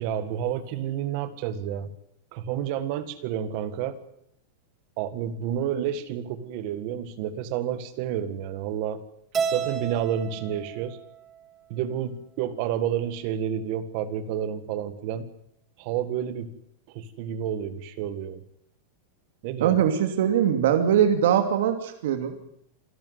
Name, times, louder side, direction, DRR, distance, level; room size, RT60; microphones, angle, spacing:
voice 1, 0.0-1.9 2.3-4.0 5.0-9.0 9.5-11.0 11.7-15.3 15.8-16.5 16.9-18.4 19.4-19.8, right 9 dB, 35° right, 12 dB, 1.8 m, -30 dB
Keyboard (musical), 9.3-11.7, right 6 dB, 15° right, 1.4 m, -32 dB
voice 2, 19.6-22.3, right 9 dB, 65° right, 7 dB, 2.7 m, -22 dB
27.0 x 12.0 x 9.4 m, 0.72 s
supercardioid pair, 180°, 0 cm